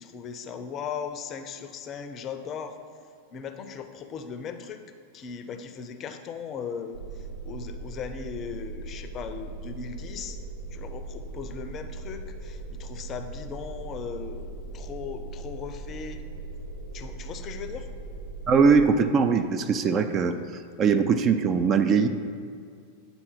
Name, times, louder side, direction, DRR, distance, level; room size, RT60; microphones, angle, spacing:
voice 1, 0.0-2.8 3.3-4.8 5.1-10.4 10.7-16.2 16.9-17.9, left 6 dB, 30° left, 8 dB, 0.6 m, -38 dB
sound 1, 6.9-18.7, right 2 dB, 80° right, 0.9 m, -39 dB
voice 2, 18.5-20.4 20.8-22.1, right 5 dB, 30° right, 8 dB, 0.4 m, -21 dB
9.0 x 3.9 x 5.9 m, 2.2 s
figure-of-eight pair, 90°, 0 cm